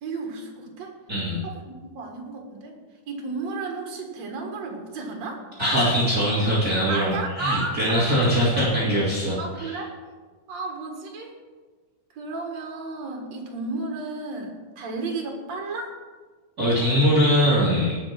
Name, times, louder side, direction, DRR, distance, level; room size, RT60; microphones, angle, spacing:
voice 1, 0.0-0.9 1.4-2.8 3.1-5.4 6.9-8.2 8.6-8.7 9.4-9.9 10.5-11.4 12.1-15.9, right 3 dB, 60° right, 2 dB, 2.9 m, -33 dB
voice 2, 1.1-1.4 5.6-9.8 16.6-18.0, equal, 30° right, -7 dB, 2.7 m, -22 dB
18.0 x 6.3 x 6.0 m, 1.4 s
omnidirectional pair, 3.7 m